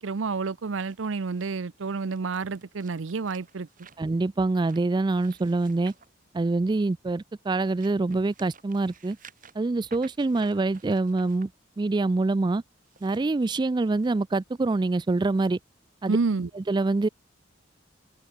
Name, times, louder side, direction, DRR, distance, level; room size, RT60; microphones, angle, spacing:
voice 1, 0.0-3.7 16.1-16.5, right 4 dB, 80° right, 0.6 m, -29 dB
sound 1, 0.8-6.9 7.4-11.5 12.7-14.1 14.6-14.8 15.5-15.6, right 6 dB, 45° right, 6.5 m, -55 dB
voice 2, 4.0-5.9 6.3-9.2 9.6-11.5 11.8-12.6 13.0-15.6 16.0-16.2 16.5-17.1, right 3 dB, 25° right, 0.3 m, -25 dB
head